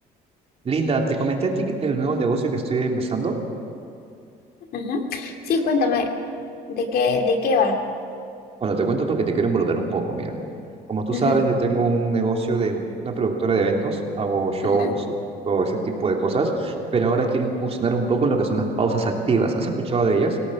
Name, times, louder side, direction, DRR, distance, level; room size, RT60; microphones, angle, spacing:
voice 1, 0.6-3.4 8.6-10.3 10.9-15.0 15.5-20.4, right 3 dB, 35° right, 1 dB, 3.0 m, -23 dB
voice 2, 4.7-6.1 6.7-7.8 11.1-11.4 14.6-14.9, left 4 dB, 65° left, 4 dB, 2.4 m, -23 dB
26.0 x 17.5 x 6.3 m, 2.6 s
cardioid pair, 110°, 17 cm